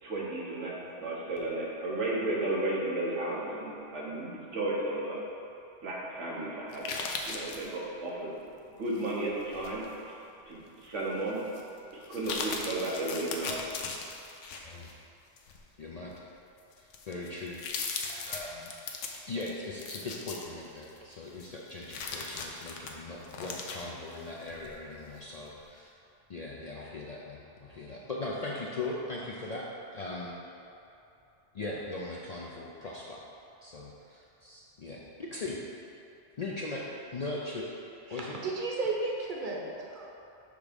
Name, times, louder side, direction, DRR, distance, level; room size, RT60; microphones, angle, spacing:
voice 1, 0.0-5.2 5.8-6.9 7.2-8.3 8.8-9.8 10.4-11.4 12.1-13.6, right 2 dB, 90° right, -4 dB, 1.4 m, -33 dB
sound 1, 6.7-7.7 9.0-9.9 10.4-10.5 11.5-11.6 12.0-14.9 15.4-15.6 16.3-16.4 16.7-21.0 21.4-24.7 25.1-25.2, left 4 dB, 90° left, 1.0 m, -38 dB
voice 2, 15.8-16.1 16.8-17.6 18.1-18.7 19.3-25.9 26.3-29.7 29.9-30.3 31.5-33.2 33.6-35.6 36.4-36.9 37.1-37.7 38.1-38.4, left 2 dB, 50° left, -4 dB, 0.5 m, -39 dB
voice 3, 38.1-40.1, right 3 dB, 45° right, -2 dB, 1.0 m, -34 dB
6.6 x 3.6 x 5.1 m, 2.8 s
omnidirectional pair, 1.2 m